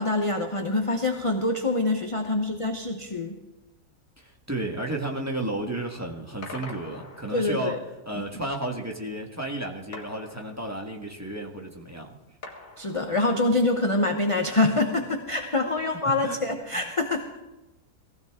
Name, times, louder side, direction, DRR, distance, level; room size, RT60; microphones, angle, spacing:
voice 1, 0.0-3.4 7.3-7.8 8.1-8.2 12.8-17.4, left 2 dB, 25° left, 4 dB, 0.7 m, -25 dB
voice 2, 4.2-7.8 8.0-12.1 15.9-16.4 16.7-16.8, right 1 dB, 10° right, 0 dB, 1.5 m, -33 dB
sound 1, 6.4-7.8 9.9-11.1 12.4-13.6, left 3 dB, 55° left, 2.3 m, -44 dB
19.0 x 15.5 x 3.7 m, 1.1 s
omnidirectional pair, 1.7 m